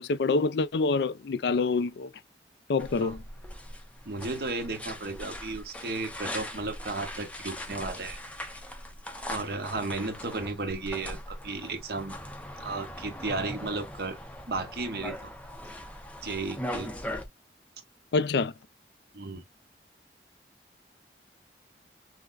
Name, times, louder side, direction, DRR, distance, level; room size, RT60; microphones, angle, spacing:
voice 1, 0.0-2.1 2.7-3.2 18.1-18.5, left 4 dB, 75° left, 0.4 m, -26 dB
sound 1, 2.8-17.3, left 1 dB, 10° left, 0.5 m, -40 dB
voice 2, 4.0-8.2 9.3-12.2 12.6-14.2 14.5-15.3 16.2-16.9 19.1-19.4, right 3 dB, 65° right, 1.0 m, -34 dB
5.7 x 2.1 x 2.4 m
head